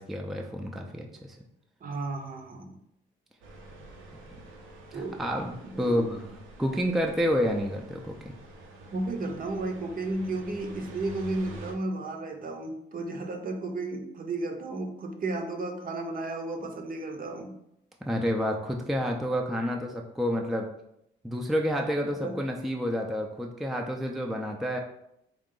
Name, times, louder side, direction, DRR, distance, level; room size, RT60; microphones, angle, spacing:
voice 1, 0.0-1.4 4.9-8.3 18.0-20.7 21.2-24.8, equal, ahead, 1 dB, 0.4 m, -29 dB
voice 2, 1.8-2.8 4.9-5.2 5.6-6.0 8.9-17.5 22.2-22.4, right 2 dB, 45° right, 4 dB, 0.7 m, -33 dB
sound 1, 3.4-11.7, right 2 dB, 85° right, 0.7 m, -47 dB
3.7 x 2.4 x 3.7 m, 0.78 s
cardioid pair, 90°, 20 cm